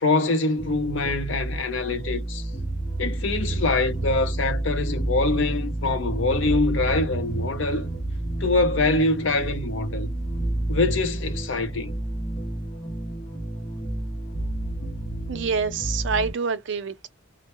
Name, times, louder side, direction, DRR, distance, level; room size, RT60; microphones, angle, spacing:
voice 1, 0.0-2.5 3.0-7.9 8.4-10.1 10.7-12.0, left 3 dB, 70° left, 0.6 m, -24 dB
sound 1, 0.6-16.3, right 1 dB, 50° left, 0.9 m, -30 dB
voice 2, 15.3-17.1, right 5 dB, 65° right, 0.4 m, -26 dB
2.1 x 2.0 x 3.0 m
head